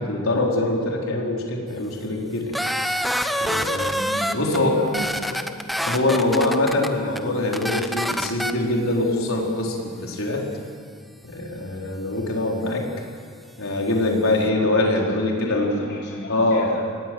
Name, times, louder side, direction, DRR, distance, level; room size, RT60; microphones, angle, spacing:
voice 1, 0.0-2.6 3.4-3.9 4.3-4.9 5.3-5.4 5.8-10.5 11.2-12.9 13.6-15.8 16.3-16.7, left 2 dB, 75° left, -1 dB, 4.6 m, -23 dB
sound 1, 2.5-4.6 4.9-6.9 7.2-7.3 7.5-8.5, equal, ahead, 0.9 m, -25 dB
voice 2, 3.7-5.1 14.5-16.8, right 1 dB, 50° left, -4 dB, 4.3 m, -35 dB
26.5 x 19.0 x 8.0 m, 2.1 s
head